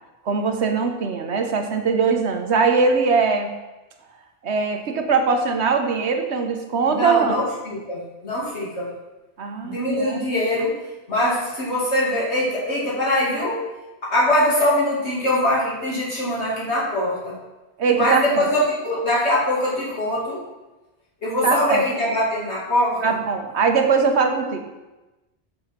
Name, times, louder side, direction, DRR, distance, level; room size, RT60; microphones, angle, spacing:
voice 1, 0.2-3.5 4.4-7.4 9.4-10.2 17.8-18.5 21.4-21.8 23.0-24.6, right 5 dB, 75° right, 5 dB, 1.3 m, -21 dB
voice 2, 6.9-8.9 9.6-10.7 11.1-13.6 14.1-17.4 17.9-20.4 21.2-23.0, left 1 dB, 80° left, -7 dB, 2.8 m, -22 dB
7.6 x 7.0 x 5.8 m, 1.1 s
omnidirectional pair, 1.1 m